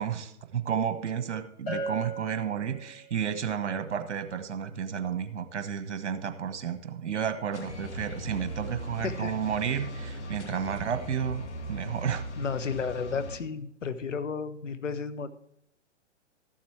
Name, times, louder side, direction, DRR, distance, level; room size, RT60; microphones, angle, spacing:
voice 1, 0.0-11.4 11.7-12.3, right 8 dB, 65° right, 9 dB, 1.4 m, -32 dB
Bell, 1.7-3.3, right 1 dB, 35° left, 5.1 m, -37 dB
sound 1, 7.5-13.4, equal, 70° left, 2.2 m, -38 dB
voice 2, 9.0-9.4 12.4-15.3, left 5 dB, 85° left, 11 dB, 1.2 m, -33 dB
13.5 x 7.4 x 4.5 m, 0.75 s
hypercardioid pair, 130°, 36 cm